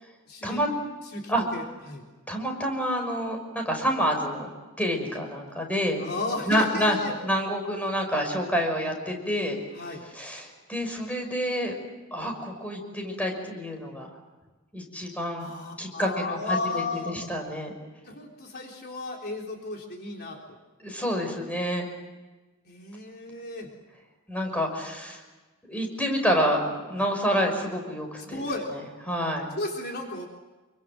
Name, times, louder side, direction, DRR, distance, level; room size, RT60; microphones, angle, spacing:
voice 1, 0.3-0.6 1.1-2.0 6.0-7.2 9.7-10.0 15.4-17.2 18.0-20.6 22.7-23.7 27.0-27.1 28.2-28.7 29.5-30.3, left 2 dB, 50° left, 1 dB, 3.6 m, -34 dB
voice 2, 2.3-4.5 4.8-6.0 6.5-7.0 7.2-9.6 10.1-11.8 12.1-14.1 14.7-15.5 15.8-17.7 20.8-21.9 24.3-25.2 25.7-28.4 29.1-29.5, equal, 5° left, 2 dB, 6.0 m, -28 dB
28.0 x 24.5 x 7.7 m, 1.2 s
head